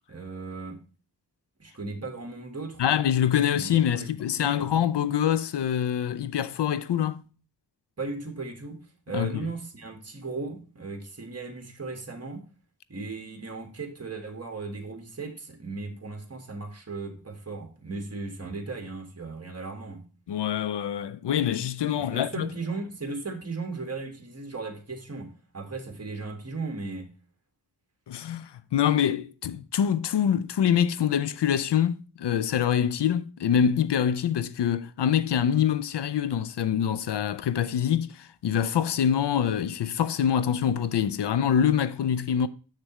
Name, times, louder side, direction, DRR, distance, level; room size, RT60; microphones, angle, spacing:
voice 1, 0.1-0.8 1.6-2.9 3.5-4.1 4.4-4.7 8.0-8.8 9.1-12.4 12.9-20.0 22.0-27.1, right 3 dB, 35° right, 1.5 m, -36 dB
voice 2, 2.8-7.2 9.1-9.5 20.3-22.5 28.1-42.5, left 9 dB, 75° left, 0.5 m, -25 dB
6.8 x 6.5 x 3.0 m
wide cardioid pair, 85°, 41 cm